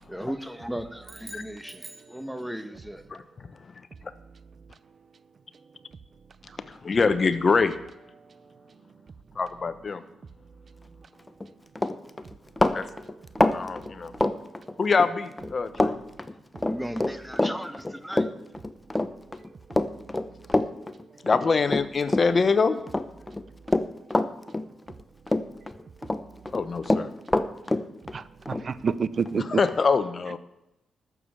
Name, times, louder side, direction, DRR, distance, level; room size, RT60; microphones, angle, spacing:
voice 1, 0.1-3.1 16.6-18.3, equal, ahead, 1.2 m, -36 dB
sound 1, 1.0-2.8, right 2 dB, 30° right, 1.6 m, -47 dB
voice 2, 6.7-7.8 9.4-10.0 12.7-12.9 13.5-14.1 14.8-16.0 21.2-22.8 26.5-27.1 29.6-30.4, left 4 dB, 45° left, 1.0 m, -24 dB
Run, 11.3-11.5 11.8-15.1 15.4-15.9 16.2-22.5 22.9-25.0 25.3-26.2 26.5-29.8, left 2 dB, 20° left, 0.9 m, -26 dB
voice 3, 28.1-29.6 30.3-30.4, right 5 dB, 50° right, 0.6 m, -28 dB
12.0 x 7.2 x 7.4 m
supercardioid pair, 55°, 0 cm